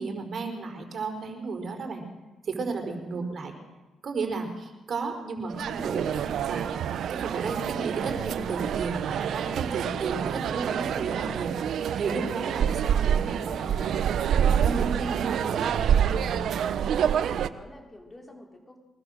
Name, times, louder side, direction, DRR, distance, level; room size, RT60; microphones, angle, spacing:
voice 1, 0.0-2.0 2.4-3.5 4.0-6.7 7.1-11.5 11.9-15.7 16.1-16.5, right 4 dB, 50° right, 5 dB, 4.6 m, -33 dB
voice 2, 2.9-3.3 9.9-10.2 16.7-18.8, left 1 dB, 20° left, 1 dB, 4.4 m, -48 dB
sound 1, 5.5-17.5, right 8 dB, 70° right, 1.0 m, -27 dB
23.5 x 19.5 x 6.6 m, 1.1 s
cardioid pair, 90°, 0 cm